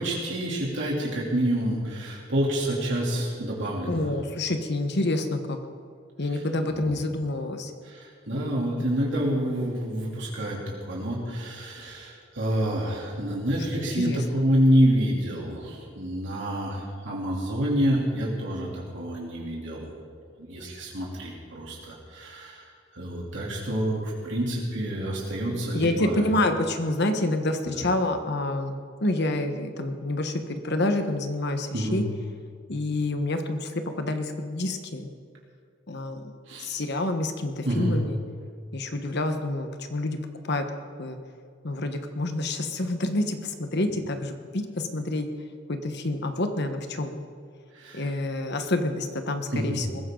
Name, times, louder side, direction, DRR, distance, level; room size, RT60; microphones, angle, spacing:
voice 1, 0.0-4.1 6.3-6.4 6.7-7.0 7.8-19.9 20.4-26.2 27.6-27.9 31.7-32.0 36.5-36.7 37.6-37.9 47.7-48.1 49.5-49.8, equal, 65° right, -4 dB, 3.2 m, -28 dB
voice 2, 3.9-5.6 6.2-7.7 8.3-8.8 13.7-14.2 25.7-28.7 29.0-32.0 32.7-35.1 35.9-36.3 36.6-38.2 38.7-40.2 40.4-40.6 41.0-41.2 41.6-45.3 45.7-47.2 47.9-50.0, left 2 dB, 60° left, 7 dB, 1.3 m, -28 dB
21.5 x 15.5 x 3.9 m, 2.3 s
head